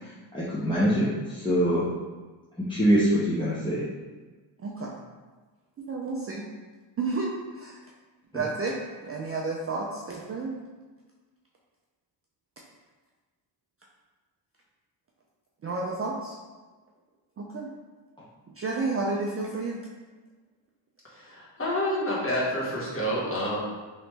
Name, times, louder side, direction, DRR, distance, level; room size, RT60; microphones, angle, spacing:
voice 1, 0.3-1.8 2.7-3.8, equal, 10° left, -9 dB, 0.6 m, -24 dB
voice 2, 4.6-4.9 5.9-6.4 7.0-7.8 8.3-10.6 15.6-16.3 17.4-17.7 18.6-19.8, right 3 dB, 30° right, -2 dB, 0.4 m, -31 dB
voice 3, 21.1-23.6, equal, 25° left, -6 dB, 1.3 m, -28 dB
3.1 x 3.0 x 3.3 m, 1.3 s
cardioid pair, 85°, 47 cm